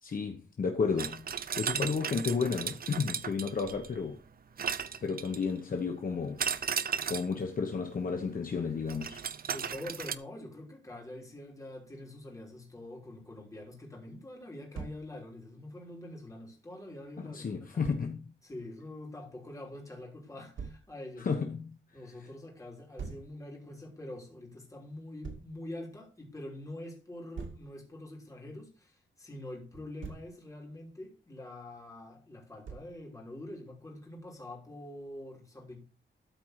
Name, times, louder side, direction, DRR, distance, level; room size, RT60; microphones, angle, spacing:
voice 1, 0.0-4.2 5.0-6.4 7.1-9.2 17.2-18.3 21.2-21.8, left 5 dB, 45° left, 1.1 m, -32 dB
sound 1, 1.0-4.0 4.6-5.6 6.4-7.4 8.9-10.1, right 7 dB, 50° right, 0.6 m, -35 dB
voice 2, 9.5-17.8 18.4-21.3 21.9-35.8, left 1 dB, 15° left, 3.2 m, -45 dB
Thump thud, 14.7-15.0 17.8-18.0 20.6-20.8 23.0-23.3 25.2-25.5 27.4-27.7 29.7-30.3 32.7-33.0, right 5 dB, 75° right, 2.2 m, -42 dB
13.0 x 4.6 x 6.5 m
wide cardioid pair, 165°, 20 cm